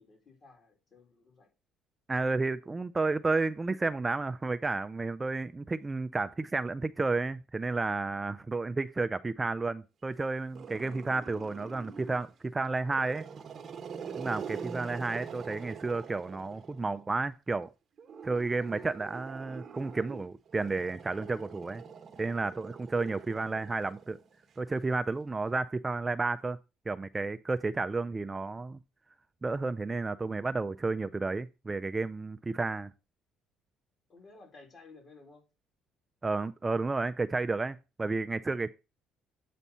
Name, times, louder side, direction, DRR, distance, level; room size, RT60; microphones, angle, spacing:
voice 1, 0.0-1.5 14.6-14.8 32.5-32.6 34.1-35.5, left 3 dB, 45° left, 3.0 m, -55 dB
voice 2, 2.1-13.3 14.2-17.7 18.2-21.8 22.2-24.2 24.6-26.6 26.9-28.8 29.4-32.9 36.2-38.7, right 3 dB, 20° right, 0.4 m, -32 dB
Growling, 10.5-12.3 12.8-17.0 18.0-24.5, right 6 dB, 45° right, 1.1 m, -44 dB
8.2 x 4.2 x 5.5 m
cardioid pair, 90°, 0 cm